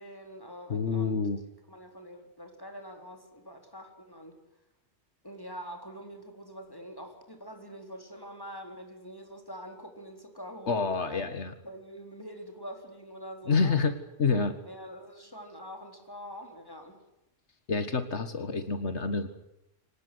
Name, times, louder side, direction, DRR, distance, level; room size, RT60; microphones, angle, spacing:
voice 1, 0.0-1.2 1.7-4.4 5.2-11.2 11.6-13.8 14.6-17.0, equal, 20° left, 3 dB, 4.1 m, -45 dB
voice 2, 0.7-1.4 10.7-11.5 13.5-14.6 17.7-19.4, left 4 dB, 85° left, 10 dB, 2.0 m, -28 dB
25.5 x 18.5 x 9.6 m, 0.87 s
omnidirectional pair, 1.1 m